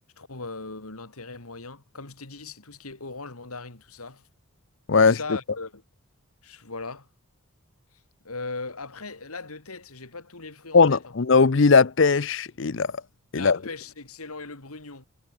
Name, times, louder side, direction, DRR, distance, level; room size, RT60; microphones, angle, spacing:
voice 1, 0.2-4.3 4.9-5.8 6.4-7.1 8.2-11.0 13.3-15.1, left 3 dB, 85° left, 2.9 m, -39 dB
voice 2, 10.7-12.9 13.3-13.6, left 4 dB, 55° left, 0.6 m, -19 dB
head